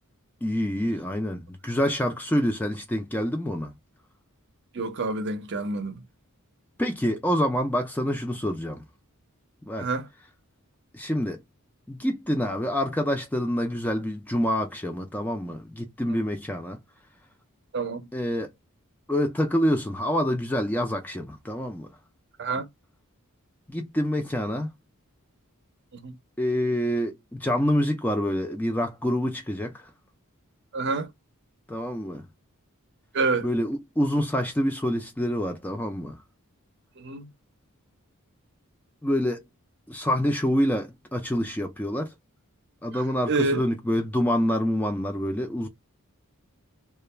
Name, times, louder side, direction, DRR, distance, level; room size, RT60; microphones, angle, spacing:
voice 1, 0.4-3.7 6.8-8.8 9.7-9.9 10.9-11.4 11.9-16.8 18.1-18.5 19.1-21.9 23.7-24.7 26.4-29.9 31.7-32.2 33.4-36.2 39.0-39.4 39.9-42.1 42.8-45.7, equal, 10° left, 0.3 m, -26 dB
voice 2, 4.7-6.0 9.8-10.1 17.7-18.1 22.4-22.7 25.9-26.1 30.7-31.1 33.1-33.5 37.0-37.3 42.9-43.0 43.3-43.6, right 3 dB, 50° right, 0.6 m, -28 dB
2.3 x 2.1 x 3.1 m
head